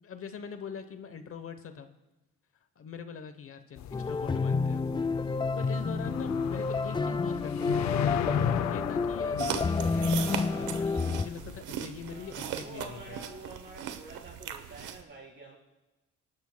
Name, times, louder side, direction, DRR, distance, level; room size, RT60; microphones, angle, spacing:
voice 1, 0.0-1.9 2.8-4.8 5.3-13.2, left 6 dB, 45° left, 9 dB, 0.9 m, -43 dB
sound 1, 3.8-11.6, left 10 dB, 65° left, 0.5 m, -36 dB
sound 2, 3.9-11.3, left 4 dB, 15° left, 0.3 m, -29 dB
sound 3, 9.4-15.0, right 9 dB, 90° right, 0.9 m, -39 dB
voice 2, 12.0-15.6, right 2 dB, 40° right, -2 dB, 4.0 m, -47 dB
27.5 x 11.5 x 2.2 m, 1.1 s
cardioid pair, 90°, 30 cm